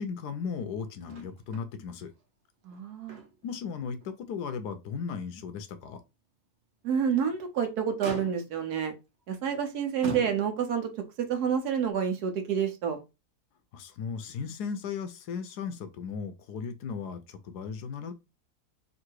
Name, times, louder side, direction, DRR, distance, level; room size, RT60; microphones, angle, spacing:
voice 1, 0.0-2.1 3.4-6.0 13.7-18.1, left 6 dB, 85° left, 1.3 m, -36 dB
Motor vehicle (road), 1.1-1.7 2.0-2.1 2.6-3.6 4.0-4.1 4.7-4.8 7.0-7.5 8.0-8.7 9.5-9.6 10.0-10.8 11.9-12.0, right 2 dB, 45° right, 1.1 m, -42 dB
voice 2, 2.6-3.2 6.8-8.9 9.3-10.9 11.2-13.0, right 7 dB, 75° right, 1.4 m, -28 dB
3.8 x 2.7 x 4.5 m
omnidirectional pair, 1.7 m